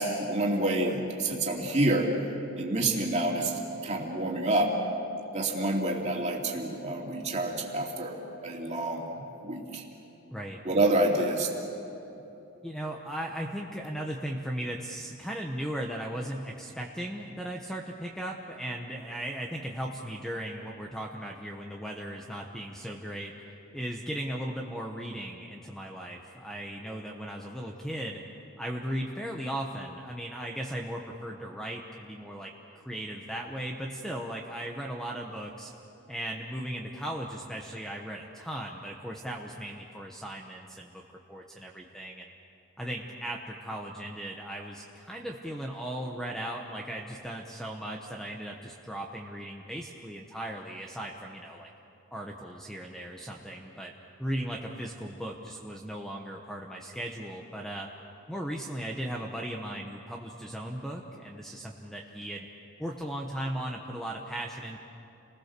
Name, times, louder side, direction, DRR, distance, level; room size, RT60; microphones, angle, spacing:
voice 1, 0.0-2.1 2.6-4.8 5.3-8.2 8.4-9.8 10.6-11.5, right 2 dB, 30° right, -1 dB, 2.8 m, -28 dB
voice 2, 10.3-10.6 12.6-23.3 23.7-28.2 28.6-35.7 36.1-41.0 41.3-42.3 42.8-51.7 52.1-53.9 54.2-57.9 58.3-62.5 62.8-64.8, right 1 dB, ahead, 0 dB, 1.1 m, -37 dB
30.0 x 20.0 x 6.8 m, 2.9 s
head